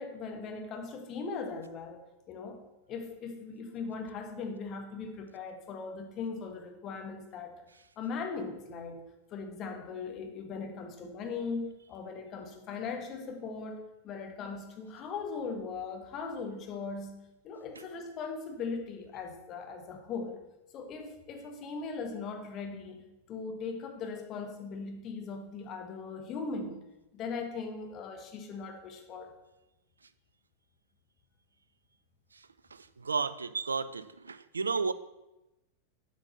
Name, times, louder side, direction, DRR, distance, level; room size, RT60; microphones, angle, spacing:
voice 1, 0.0-2.6 2.9-7.5 8.0-9.0 9.3-17.2 17.4-20.3 20.7-26.8 27.1-29.3, left 4 dB, 35° left, 4 dB, 1.4 m, -39 dB
voice 2, 32.7-34.9, right 4 dB, 75° right, 15 dB, 0.4 m, -33 dB
8.0 x 5.3 x 7.0 m, 0.98 s
figure-of-eight pair, 90°, 0 cm